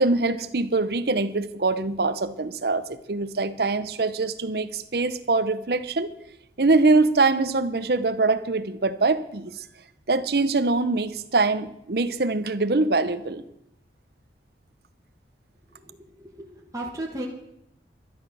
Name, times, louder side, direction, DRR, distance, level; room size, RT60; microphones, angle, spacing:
voice 1, 0.0-6.1 6.6-9.6 10.1-13.4, right 3 dB, 60° right, 12 dB, 0.8 m, -23 dB
voice 2, 16.3-17.3, right 1 dB, 20° right, -1 dB, 1.3 m, -35 dB
12.0 x 11.0 x 6.2 m, 0.80 s
head